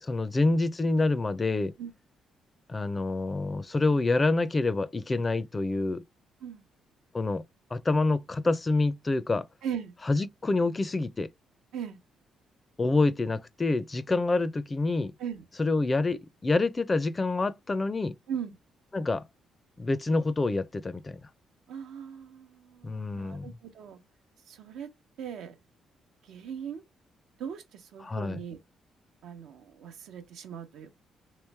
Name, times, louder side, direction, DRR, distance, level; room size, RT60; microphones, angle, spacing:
voice 1, 0.0-1.7 2.7-6.0 7.1-7.4 7.7-9.5 10.1-11.3 12.8-15.1 15.6-18.1 18.9-19.3 19.8-21.2 22.8-23.6 28.0-28.4, left 3 dB, 25° left, 0.4 m, -27 dB
voice 2, 9.6-10.0 11.7-12.0 15.2-15.4 18.3-18.6 21.7-24.0 24.5-24.9 25.2-25.6 26.2-26.8 27.4-28.6 29.2-30.9, right 8 dB, 80° right, 0.8 m, -39 dB
3.1 x 3.1 x 3.3 m
cardioid pair, 90°, 0 cm